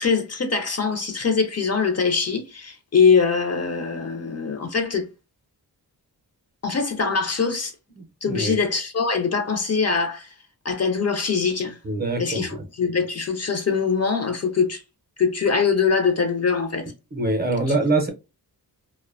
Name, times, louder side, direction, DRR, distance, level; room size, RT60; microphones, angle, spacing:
voice 1, 0.0-5.1 6.6-7.7 8.2-10.3 10.6-11.8 12.2-14.8 15.2-16.9 17.7-17.8, left 5 dB, 40° left, 0.5 m, -23 dB
voice 2, 8.3-8.6 11.8-12.6 17.1-18.1, right 2 dB, 25° right, 0.6 m, -24 dB
2.5 x 2.1 x 2.4 m
wide cardioid pair, 125°, 38 cm